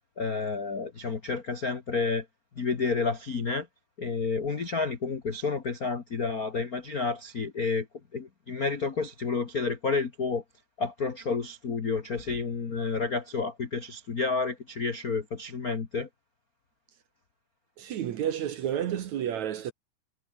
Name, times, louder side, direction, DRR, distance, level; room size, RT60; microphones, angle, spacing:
voice 1, 0.2-2.2 2.6-3.7 4.0-7.9 8.1-10.4 10.8-16.1, left 4 dB, 85° left, 0.8 m, -30 dB
voice 2, 17.8-19.7, right 10 dB, 65° right, 2.1 m, -31 dB
omnidirectional pair, 4.4 m